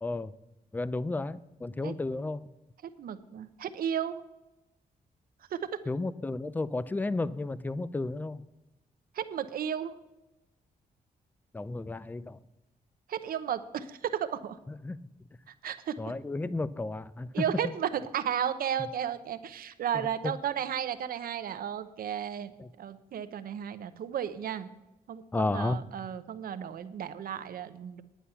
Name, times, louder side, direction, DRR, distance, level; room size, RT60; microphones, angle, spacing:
voice 1, 0.0-0.3 0.7-2.5 5.9-8.4 11.5-12.4 14.8-15.0 16.0-17.4 19.9-20.3 22.6-22.7 25.3-25.8, left 2 dB, 10° left, 17 dB, 0.4 m, -32 dB
voice 2, 3.0-4.2 5.5-5.8 9.1-9.9 13.1-14.6 15.5-16.0 17.3-22.5 22.8-24.7 25.1-28.0, right 9 dB, 80° right, 11 dB, 0.8 m, -34 dB
10.0 x 9.6 x 5.7 m, 0.98 s
cardioid pair, 115°, 15 cm